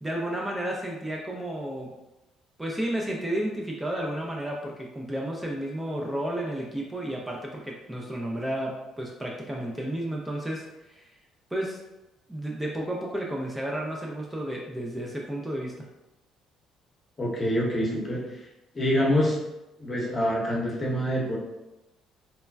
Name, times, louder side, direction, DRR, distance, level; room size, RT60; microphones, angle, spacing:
voice 1, 0.0-1.9 2.6-11.1 11.5-11.8 12.3-15.9, right 1 dB, 10° right, -2 dB, 0.4 m, -32 dB
voice 2, 17.2-18.5 18.7-19.4 19.8-21.4, equal, 30° left, -2 dB, 0.8 m, -26 dB
3.1 x 2.1 x 2.2 m, 0.98 s
supercardioid pair, 65°, 0 cm